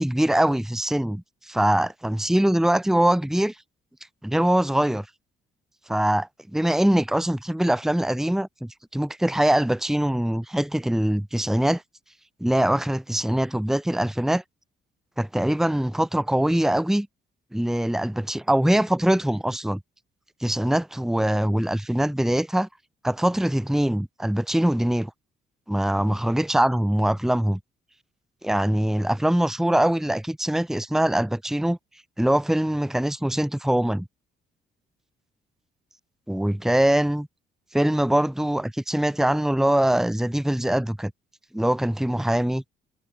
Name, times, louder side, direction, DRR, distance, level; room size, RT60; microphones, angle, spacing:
voice 1, 0.0-3.5 4.2-5.1 5.9-11.8 12.4-14.4 15.2-17.1 17.5-19.8 20.4-22.7 23.0-25.1 25.7-27.6 28.4-31.8 32.2-34.1 36.3-37.3 37.7-41.1 41.5-42.6, right 1 dB, ahead, 1.2 m, -23 dB
cardioid pair, 90°, 20 cm